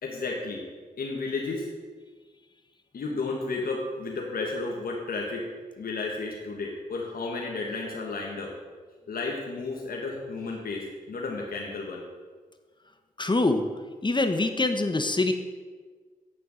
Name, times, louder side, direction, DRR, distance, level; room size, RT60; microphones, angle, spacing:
voice 1, 0.0-0.7 1.0-1.7 2.9-5.5 5.8-8.5 9.1-12.0, left 3 dB, 80° left, -1 dB, 1.5 m, -32 dB
voice 2, 13.2-13.6 14.0-15.3, left 2 dB, 30° left, 7 dB, 1.1 m, -24 dB
9.8 x 6.8 x 6.4 m, 1.4 s
cardioid pair, 45°, 15 cm